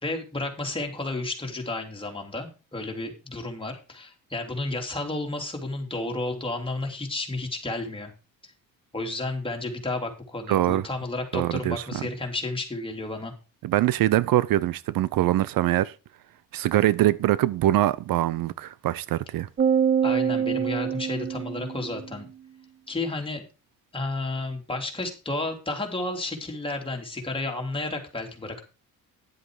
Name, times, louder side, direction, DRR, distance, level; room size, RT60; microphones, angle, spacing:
voice 1, 0.0-8.1 8.9-13.3 20.0-22.3 22.9-23.5 23.9-28.6, left 2 dB, 15° left, 3.1 m, -32 dB
voice 2, 10.5-10.9 11.3-12.0 13.6-15.9 16.5-19.5, right 14 dB, 75° right, 0.6 m, -23 dB
sound 1, 19.6-22.1, right 8 dB, 30° right, 0.4 m, -25 dB
11.0 x 7.7 x 4.8 m
cardioid pair, 100°, 35 cm